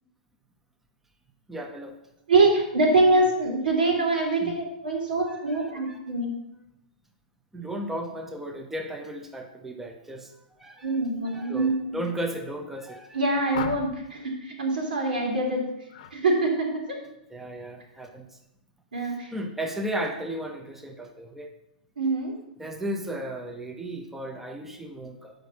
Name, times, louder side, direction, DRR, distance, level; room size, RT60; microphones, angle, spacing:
voice 1, 1.5-2.0 4.4-4.5 5.4-6.0 7.5-10.3 10.6-10.9 11.3-13.2 17.3-18.3 19.3-21.5 22.6-25.3, right 1 dB, 5° right, 3 dB, 0.8 m, -35 dB
voice 2, 2.3-6.3 10.8-11.7 13.1-15.7 16.1-17.0 18.9-19.3 22.0-22.3, right 2 dB, 80° right, 1 dB, 2.5 m, -24 dB
sound 1, 13.5-14.1 15.9-16.2 16.6-16.9, left 6 dB, 60° left, 0.8 m, -37 dB
6.6 x 5.2 x 6.2 m, 0.85 s
hypercardioid pair, 120°, 5 cm